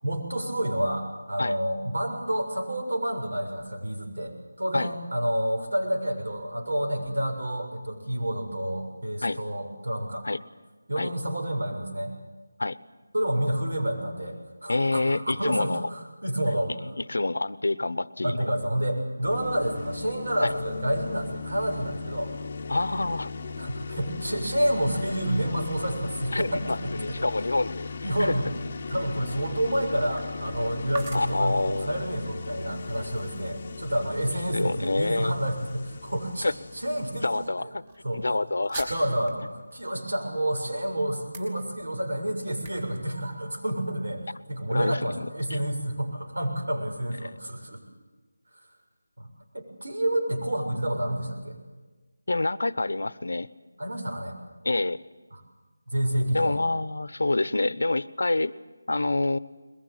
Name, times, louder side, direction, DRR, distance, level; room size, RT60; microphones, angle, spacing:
voice 1, 0.0-10.3 10.9-12.1 13.1-16.7 18.2-22.3 23.6-27.3 28.0-28.5 28.9-36.5 36.7-37.7 38.0-38.2 38.9-44.2 44.5-47.8 48.5-48.6 49.2-49.3 49.5-51.6 53.8-54.4 55.3-55.4 55.9-56.6, right 1 dB, 80° right, 3 dB, 7.0 m, -29 dB
voice 2, 14.7-15.9 17.0-18.5 20.4-20.5 22.7-23.3 26.3-27.9 28.2-28.3 31.1-32.0 34.5-35.3 36.4-36.5 37.2-37.8 38.1-38.9 44.7-45.2 45.5-45.6 47.2-47.3 52.3-53.5 54.6-55.0 56.3-58.5 58.9-59.4, left 2 dB, 70° left, 18 dB, 0.9 m, -27 dB
sound 1, 19.2-37.5, left 4 dB, 20° left, 0.9 m, -38 dB
sound 2, 26.3-44.1, right 3 dB, 20° right, 2.9 m, -49 dB
22.0 x 21.5 x 9.3 m, 1.2 s
figure-of-eight pair, 180°, 0 cm